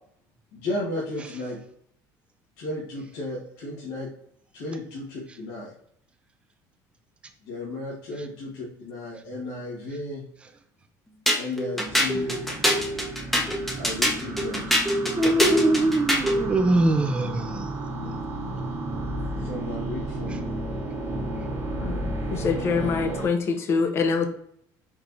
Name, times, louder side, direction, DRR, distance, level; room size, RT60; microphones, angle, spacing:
voice 1, 0.5-1.6 2.6-4.1 4.5-5.7 7.5-10.2 11.4-12.4 13.8-14.9 15.5-15.6 19.4-20.5, left 2 dB, 80° left, -5 dB, 1.5 m, -34 dB
sound 1, 11.3-16.4, equal, 5° left, 0.8 m, -24 dB
sound 2, 11.9-23.3, right 1 dB, 45° right, 1.3 m, -33 dB
voice 2, 15.2-17.6, right 1 dB, 15° right, 7 dB, 0.5 m, -22 dB
voice 3, 21.8-24.3, left 5 dB, 35° left, 7 dB, 0.6 m, -25 dB
4.5 x 4.5 x 2.6 m, 0.68 s
cardioid pair, 145°, 7 cm